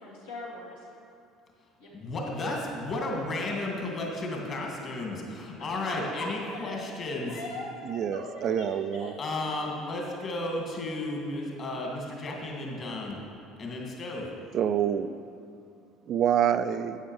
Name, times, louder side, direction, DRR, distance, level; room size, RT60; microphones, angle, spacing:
voice 1, 0.0-0.9 1.8-1.9 5.6-6.8 7.1-9.1, left 1 dB, 80° left, -7 dB, 2.2 m, -40 dB
voice 2, 1.9-7.4 9.2-13.2 13.6-14.3, left 2 dB, 45° left, -1 dB, 2.0 m, -33 dB
voice 3, 7.9-9.1 14.5-15.1 16.1-17.0, right 9 dB, 50° right, 11 dB, 0.3 m, -26 dB
11.5 x 8.2 x 3.2 m, 2.5 s
figure-of-eight pair, 60°, 0 cm